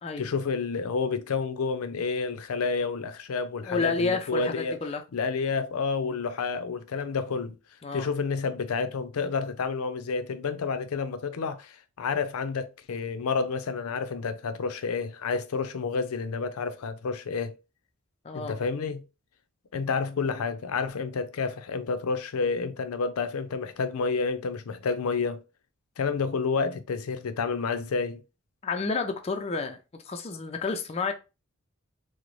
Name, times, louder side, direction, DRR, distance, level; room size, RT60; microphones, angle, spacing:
voice 1, 0.2-4.8 5.1-7.6 7.9-17.5 18.3-19.0 19.7-25.4 26.0-28.2, left 5 dB, 85° left, 0.5 m, -29 dB
voice 2, 3.6-5.0 7.8-8.1 18.2-18.5 28.6-29.8 30.1-31.1, left 4 dB, 30° left, 0.4 m, -30 dB
3.8 x 2.1 x 3.0 m
head